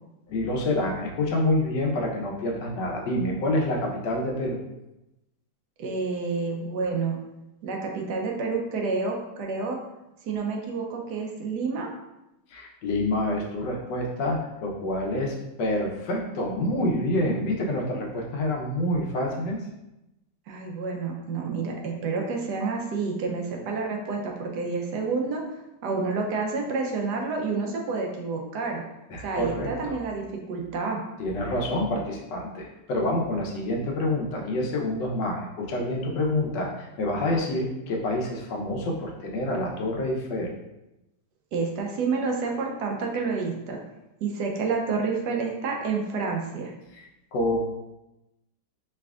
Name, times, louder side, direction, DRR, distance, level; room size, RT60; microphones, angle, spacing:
voice 1, 0.3-4.6 12.5-19.6 29.1-30.0 31.2-40.5 46.9-47.6, left 1 dB, 85° left, 0 dB, 1.4 m, -27 dB
voice 2, 5.8-7.2 7.6-9.8 10.2-11.9 20.5-25.4 25.8-28.8 29.2-31.0 41.5-43.8 44.2-46.7, right 4 dB, 75° right, 1 dB, 1.2 m, -29 dB
4.9 x 3.3 x 2.4 m, 0.93 s
omnidirectional pair, 1.9 m